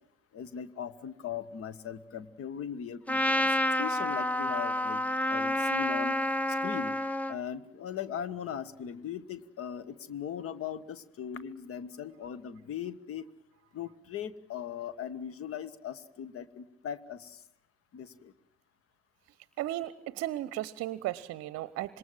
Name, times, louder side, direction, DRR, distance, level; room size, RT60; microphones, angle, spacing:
voice 1, 0.3-5.0 5.3-6.2 6.6-6.9 7.3-13.3 13.7-17.4 17.9-18.3, left 8 dB, 45° left, 17 dB, 1.4 m, -39 dB
Trumpet, 3.1-7.4, left 1 dB, 5° left, 0.9 m, -29 dB
voice 2, 19.6-22.0, right 15 dB, 50° right, 20 dB, 0.8 m, -35 dB
26.5 x 22.0 x 7.5 m, 0.82 s
figure-of-eight pair, 50°, 32 cm